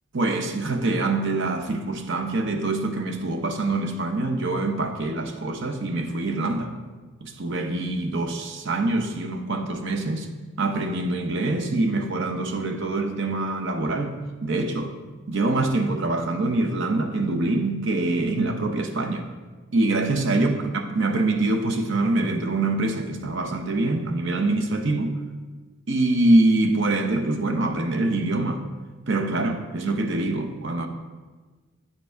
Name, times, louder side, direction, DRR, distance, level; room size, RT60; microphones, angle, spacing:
voice 1, 0.1-6.7 7.2-10.3 10.6-14.1 14.4-14.9 15.3-19.3 19.7-25.2 25.9-28.6 29.1-30.9, right 2 dB, 60° right, 6 dB, 0.8 m, -24 dB
9.1 x 5.9 x 4.6 m, 1.3 s
head